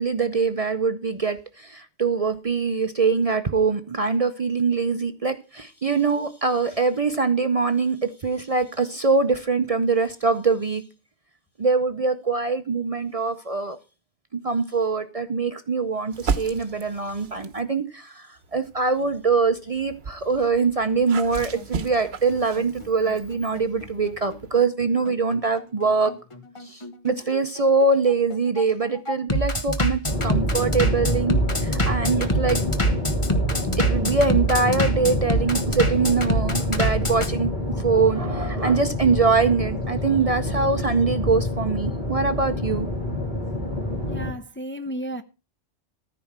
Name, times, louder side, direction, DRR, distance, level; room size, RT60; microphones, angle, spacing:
voice 1, 0.0-10.8 11.6-13.8 14.4-18.2 18.5-26.1 26.7-32.6 33.8-37.5 37.8-42.9, right 4 dB, 40° right, 0.7 m, -23 dB
sound 1, 16.1-17.7 18.4-24.6, right 5 dB, 70° right, 1.2 m, -35 dB
Bass drum, 21.3-37.3, right 1 dB, 30° left, 1.3 m, -26 dB
sound 2, 30.0-44.3, left 1 dB, 45° left, 3.7 m, -27 dB
voice 2, 44.1-45.2, right 1 dB, 15° left, 0.7 m, -33 dB
14.0 x 4.8 x 7.3 m
omnidirectional pair, 1.1 m